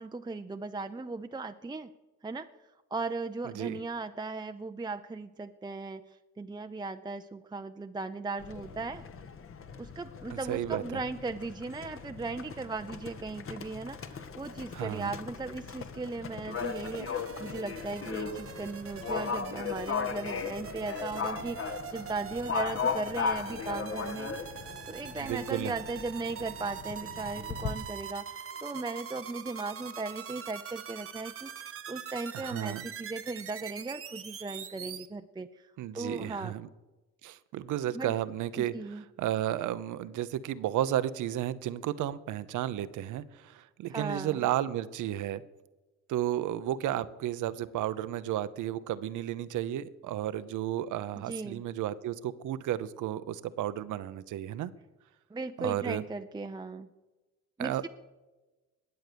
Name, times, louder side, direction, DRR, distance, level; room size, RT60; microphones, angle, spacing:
voice 1, 0.0-1.9 2.2-2.5 2.9-6.0 6.4-9.0 9.8-24.3 24.9-35.5 35.9-36.6 37.9-38.1 38.6-39.0 43.9-44.4 51.3-51.6 55.3-56.9 57.6-57.9, right 3 dB, 15° right, 7 dB, 0.6 m, -37 dB
voice 2, 3.4-3.8 10.3-11.0 14.7-15.1 25.2-25.7 32.3-32.8 35.8-36.7 37.2-45.4 46.1-54.7 55.6-56.0 57.6-57.9, right 12 dB, 80° right, 15 dB, 0.8 m, -33 dB
Livestock farm animals working animals, 8.4-27.7, left 6 dB, 45° left, 1.3 m, -37 dB
sound 1, 16.5-35.1, right 7 dB, 45° right, 1.2 m, -43 dB
20.5 x 7.8 x 6.9 m, 1.2 s
cardioid pair, 90°, 30 cm